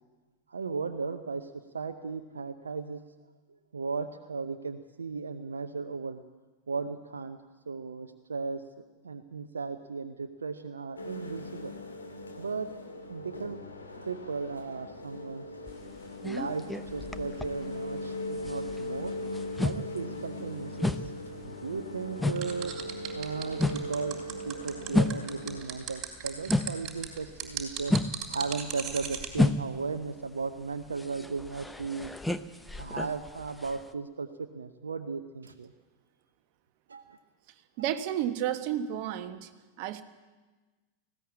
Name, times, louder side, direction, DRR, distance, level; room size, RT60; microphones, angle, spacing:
voice 1, 0.5-3.0 3.7-6.2 6.7-7.4 7.7-8.6 9.0-11.7 12.4-12.7 13.1-13.6 13.9-15.4 16.2-19.1 19.6-22.7 23.1-28.0 28.3-32.1 32.8-35.7 36.9-37.2, right 4 dB, 70° right, 7 dB, 0.8 m, -36 dB
sound 1, 11.0-25.6, left 1 dB, 75° left, 2.6 m, -39 dB
sound 2, 15.7-18.1 18.3-27.0 27.3-33.9, left 2 dB, 5° left, 0.8 m, -32 dB
sound 3, 22.4-29.3, right 9 dB, 25° right, 3.5 m, -37 dB
voice 2, 37.8-39.5 39.8-40.0, right 11 dB, 45° right, 9 dB, 1.3 m, -31 dB
19.5 x 16.0 x 8.5 m, 1.3 s
figure-of-eight pair, 90°, 0 cm